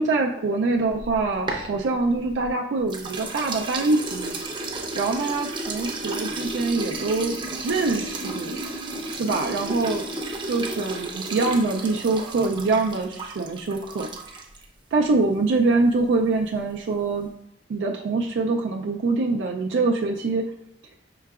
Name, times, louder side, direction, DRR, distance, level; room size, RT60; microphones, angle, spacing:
voice 1, 0.0-4.4 5.0-7.3 7.6-8.6 9.1-10.0 10.5-14.1 14.9-17.3 17.7-20.4, right 3 dB, 85° right, 1 dB, 0.4 m, -24 dB
sound 1, 0.9-2.5 2.9-14.6, right 2 dB, 25° right, 0.5 m, -33 dB
5.6 x 3.8 x 2.3 m, 0.74 s
head